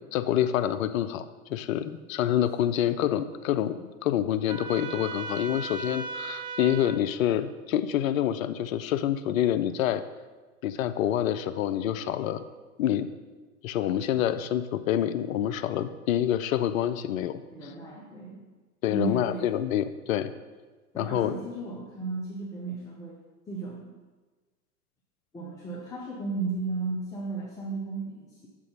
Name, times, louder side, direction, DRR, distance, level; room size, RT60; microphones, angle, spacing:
voice 1, 0.1-10.0 10.6-12.4 12.8-13.1 13.6-17.4 18.8-20.3 21.0-21.3, left 11 dB, 60° left, 12 dB, 0.5 m, -27 dB
Trumpet, 4.5-7.0, right 4 dB, 45° right, 0.7 m, -37 dB
voice 2, 17.5-18.5 18.9-19.5 20.9-23.2 23.5-23.9 25.3-28.5, right 3 dB, 5° left, -3 dB, 0.4 m, -34 dB
6.6 x 3.7 x 5.3 m, 1.3 s
hypercardioid pair, 105°, 46 cm